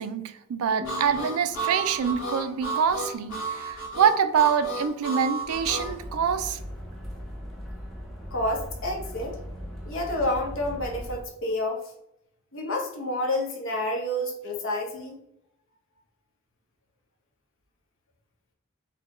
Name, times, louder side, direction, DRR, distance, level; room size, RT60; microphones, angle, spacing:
voice 1, 0.0-6.6, right 7 dB, 70° right, 9 dB, 0.4 m, -25 dB
Harmonica, 0.8-5.9, right 3 dB, 85° left, 1.3 m, -32 dB
sound 1, 0.8-4.2, left 5 dB, 40° right, 1.0 m, -47 dB
sound 2, 5.5-11.2, equal, ahead, 0.7 m, -39 dB
voice 2, 8.3-9.4 9.8-11.9 12.5-15.2, left 1 dB, 60° left, 1 dB, 0.8 m, -29 dB
4.2 x 2.2 x 3.0 m, 0.77 s
head